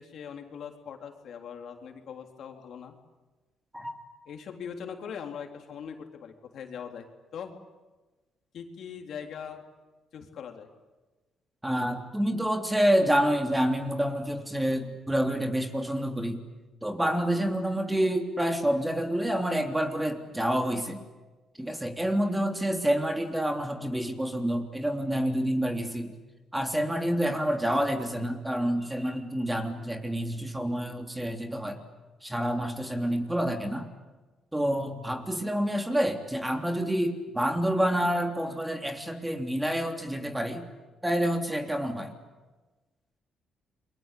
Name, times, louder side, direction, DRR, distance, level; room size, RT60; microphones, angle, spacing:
voice 1, 0.0-3.0 4.3-7.5 8.5-9.6 10.1-10.7, left 7 dB, 65° left, 3 dB, 3.7 m, -41 dB
voice 2, 11.6-16.4 16.8-21.0 21.6-26.1 26.5-31.8 32.2-33.9 34.5-40.7 41.0-42.1, equal, 10° right, 4 dB, 3.4 m, -28 dB
29.5 x 23.0 x 8.6 m, 1.2 s
cardioid pair, 90°, 0 cm